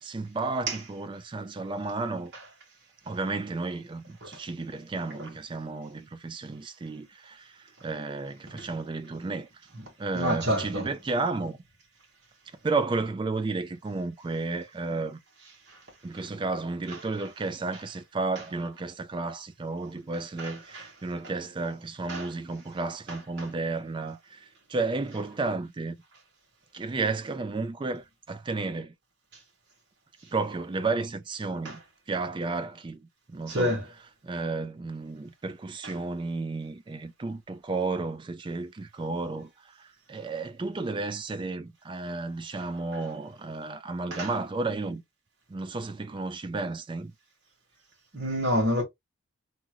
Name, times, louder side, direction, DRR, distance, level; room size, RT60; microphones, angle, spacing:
voice 1, 0.0-2.3 3.1-9.5 10.0-11.6 12.6-15.2 16.0-26.0 26.7-28.9 30.3-31.8 32.1-33.0 33.3-33.8 34.2-39.5 39.8-45.0 45.5-47.1, right 3 dB, 25° right, 0.3 m, -32 dB
voice 2, 10.1-10.9 20.4-20.8 22.1-22.3 23.4-23.5 31.6-31.7 33.5-33.8 44.1-44.3 48.1-48.8, equal, 55° right, 1.2 m, -28 dB
2.9 x 2.4 x 2.8 m
head